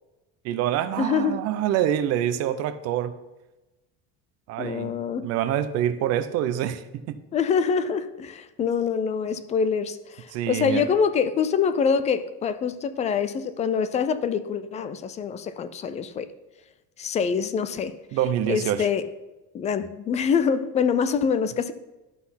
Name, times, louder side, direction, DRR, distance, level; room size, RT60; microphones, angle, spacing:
voice 1, 0.4-3.1 4.5-4.9 5.2-7.2 10.3-10.9 18.1-18.9, right 11 dB, 55° right, 12 dB, 0.6 m, -26 dB
voice 2, 1.0-1.4 4.6-5.3 7.3-16.3 17.0-18.0 18.5-19.0 19.5-21.7, left 6 dB, 25° left, 13 dB, 0.3 m, -25 dB
11.5 x 4.1 x 5.7 m, 1.0 s
cardioid pair, 165°, 31 cm